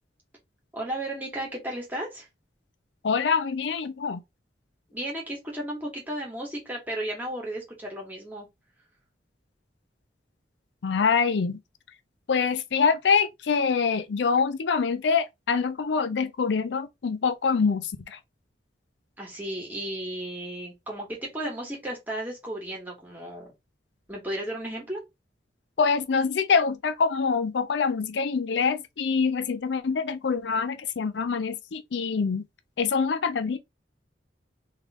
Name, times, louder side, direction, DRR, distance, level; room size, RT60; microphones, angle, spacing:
voice 1, 0.7-2.3 4.9-8.5 19.2-23.5 24.1-25.0, right 1 dB, 10° right, 1.9 m, -34 dB
voice 2, 3.0-4.2 10.8-11.6 12.3-18.2 25.8-32.4 32.8-33.6, left 5 dB, 75° left, 0.5 m, -25 dB
3.6 x 3.2 x 3.7 m
head